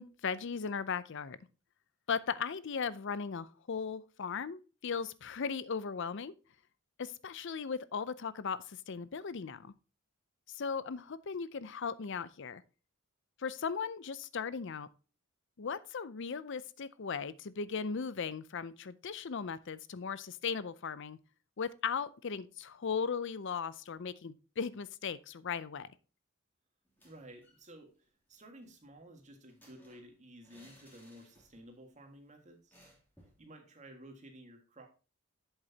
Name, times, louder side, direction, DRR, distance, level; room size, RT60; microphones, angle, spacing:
voice 1, 0.0-1.4 2.1-6.3 7.0-9.7 10.5-12.6 13.4-14.9 15.6-21.2 21.6-25.9, left 6 dB, 55° left, 0.5 m, -37 dB
sound 1, 26.8-27.7 27.9-28.0 28.3-31.8 32.1-32.2 32.7-33.4, equal, 10° left, 2.8 m, -63 dB
voice 2, 27.0-32.8 33.4-34.9, right 1 dB, 35° right, 1.7 m, -54 dB
8.0 x 7.4 x 2.8 m
head